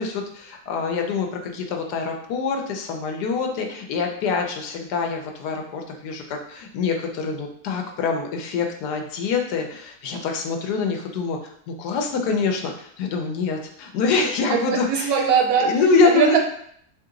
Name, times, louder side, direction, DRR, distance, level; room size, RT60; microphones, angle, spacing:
voice 1, 0.0-11.4 11.7-15.1 15.6-16.4, left 4 dB, 90° left, 3 dB, 1.2 m, -25 dB
voice 2, 14.5-15.7 16.0-16.4, right 6 dB, 75° right, 2 dB, 1.1 m, -20 dB
2.9 x 2.9 x 3.6 m, 0.65 s
omnidirectional pair, 1.7 m